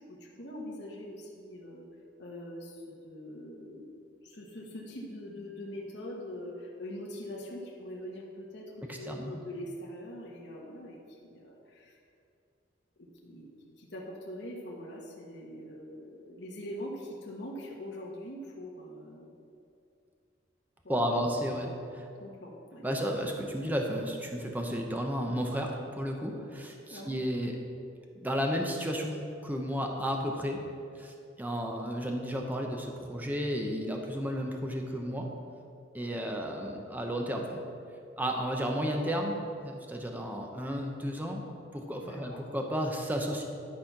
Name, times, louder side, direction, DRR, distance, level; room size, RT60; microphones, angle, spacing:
voice 1, 0.0-1.8 2.2-12.0 13.0-13.5 13.8-19.3 20.8-21.7 22.2-22.8 26.9-27.2 42.0-42.4, left 1 dB, 60° left, -3 dB, 1.2 m, -43 dB
voice 2, 8.9-9.4 20.9-21.7 21.9-22.1 22.8-27.5 28.1-30.6 31.0-35.3 35.9-37.6 38.2-39.4 39.6-41.4 41.7-43.4, equal, 10° right, 1 dB, 0.8 m, -33 dB
11.5 x 4.2 x 5.9 m, 2.5 s
head